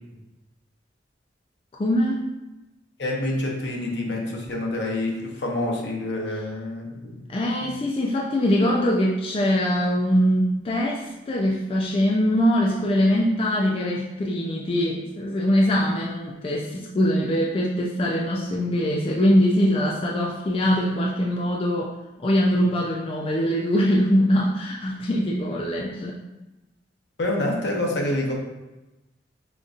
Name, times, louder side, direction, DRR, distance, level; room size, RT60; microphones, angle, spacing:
voice 1, 1.8-2.3 7.3-21.9 22.2-26.2, equal, 30° left, -2 dB, 0.3 m, -22 dB
voice 2, 3.0-7.3 27.2-28.3, left 1 dB, 75° left, -1 dB, 0.8 m, -27 dB
5.0 x 2.6 x 2.4 m, 1.0 s
head